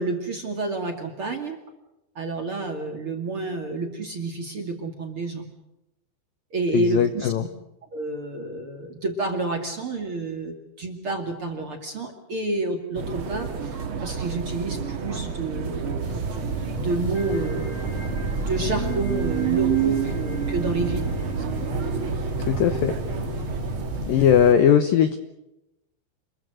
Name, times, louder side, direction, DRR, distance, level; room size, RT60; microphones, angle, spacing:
voice 1, 0.0-1.6 2.2-5.5 6.5-7.3 7.9-16.1 16.8-21.5 24.1-24.3, right 3 dB, 40° right, 4 dB, 2.3 m, -29 dB
voice 2, 6.7-7.4 22.5-22.9 24.1-25.2, left 9 dB, 75° left, 10 dB, 2.1 m, -19 dB
sound 1, 12.9-24.6, right 7 dB, 65° right, 1.3 m, -29 dB
sound 2, 16.0-24.5, left 1 dB, 10° right, 5.4 m, -34 dB
sound 3, 17.1-23.5, equal, 45° left, 6.5 m, -43 dB
28.0 x 22.0 x 6.4 m, 0.90 s
omnidirectional pair, 5.4 m